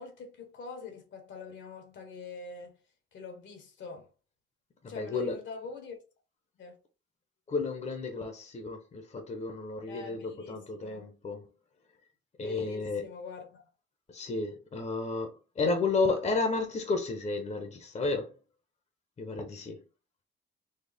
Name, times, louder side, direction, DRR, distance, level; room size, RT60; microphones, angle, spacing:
voice 1, 0.0-2.8 3.1-4.1 4.9-6.0 6.6-6.8 9.9-11.1 12.4-13.7, left 4 dB, 70° left, 1.2 m, -44 dB
voice 2, 4.8-5.4 7.5-11.5 12.4-13.1 14.1-18.3 19.2-19.8, left 3 dB, 35° left, 0.9 m, -32 dB
4.3 x 2.3 x 3.4 m
cardioid pair, 90°, 20 cm